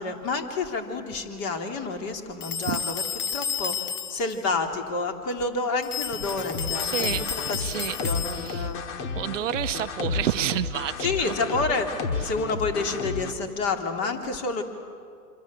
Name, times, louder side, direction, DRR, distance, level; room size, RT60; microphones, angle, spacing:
voice 1, 0.0-3.0 3.3-8.8 9.4-9.5 11.0-11.9 12.2-14.6, left 3 dB, 30° left, 4 dB, 3.2 m, -29 dB
sound 1, 2.4-4.4 5.8-8.7, left 7 dB, 65° left, 1.7 m, -32 dB
sound 2, 6.2-13.3, left 4 dB, 45° left, 2.5 m, -32 dB
voice 2, 6.8-7.3 7.6-8.0 8.3-8.7 9.1-11.3, right 12 dB, 50° right, 11 dB, 0.8 m, -29 dB
27.0 x 26.0 x 7.6 m, 2.3 s
hypercardioid pair, 125°, 47 cm